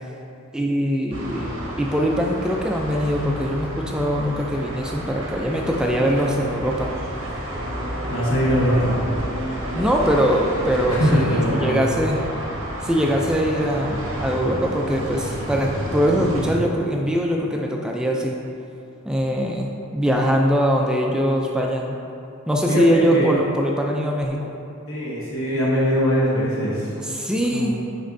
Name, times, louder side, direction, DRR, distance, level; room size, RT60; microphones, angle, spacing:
voice 1, 0.5-1.5 1.8-6.9 9.7-12.2 12.8-18.4 19.1-22.0 22.5-24.4 27.1-27.8, equal, 5° right, -1 dB, 0.3 m, -22 dB
sound 1, 1.1-16.5, right 1 dB, 65° right, 1.2 m, -30 dB
voice 2, 8.1-9.0 10.9-12.0 22.7-22.8 23.1-23.4 24.9-26.9 27.5-27.7, equal, 75° left, -7 dB, 1.0 m, -21 dB
9.6 x 4.1 x 2.6 m, 2.6 s
head